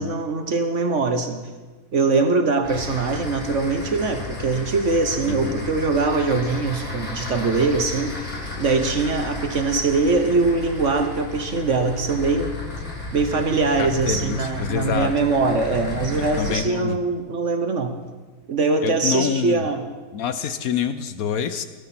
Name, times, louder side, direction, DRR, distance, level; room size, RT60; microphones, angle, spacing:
voice 1, 0.0-1.4 1.9-8.2 8.6-12.5 13.1-18.0 18.5-19.8, right 3 dB, 45° right, 7 dB, 1.1 m, -22 dB
sound 1, 2.6-16.6, left 3 dB, 40° left, 4.6 m, -33 dB
voice 2, 5.2-5.7 13.8-15.1 16.4-17.0 18.8-19.6 20.1-21.6, left 7 dB, 65° left, 12 dB, 0.9 m, -26 dB
17.5 x 12.5 x 6.0 m, 1.3 s
omnidirectional pair, 2.2 m